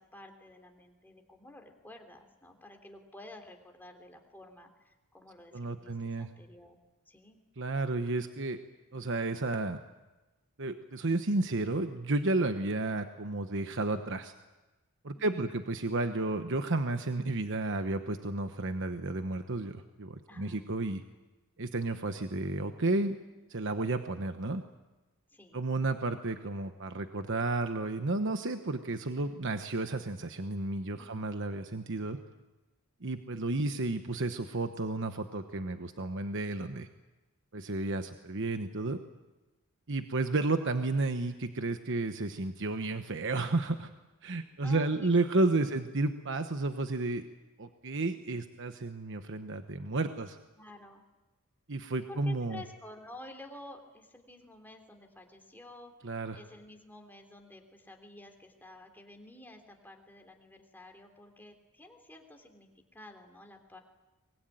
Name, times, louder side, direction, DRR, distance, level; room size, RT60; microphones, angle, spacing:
voice 1, 0.0-6.8 7.0-7.4 15.1-15.5 20.3-20.6 25.3-25.6 31.0-31.2 44.6-45.1 45.5-45.7 50.6-51.0 52.1-55.9 56.3-63.8, left 1 dB, 10° left, 4 dB, 3.2 m, -51 dB
voice 2, 5.5-6.3 7.6-8.6 8.9-9.8 10.6-14.3 15.0-21.0 21.6-23.2 23.5-24.6 25.5-32.2 33.0-36.9 37.5-39.0 39.9-43.9 44.2-47.2 47.6-50.4 51.7-52.6 56.0-56.4, right 2 dB, 60° right, 8 dB, 1.1 m, -32 dB
24.0 x 21.5 x 9.3 m, 1.1 s
head